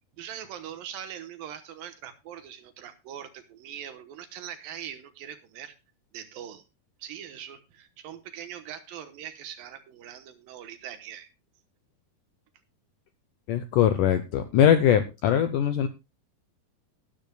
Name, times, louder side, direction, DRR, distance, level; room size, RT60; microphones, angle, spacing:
voice 1, 0.2-5.7 6.1-6.6 7.0-11.3, right 9 dB, 70° right, 9 dB, 2.5 m, -41 dB
voice 2, 13.5-15.9, left 9 dB, 75° left, 10 dB, 1.9 m, -21 dB
18.5 x 10.5 x 2.3 m, 0.26 s
omnidirectional pair, 4.6 m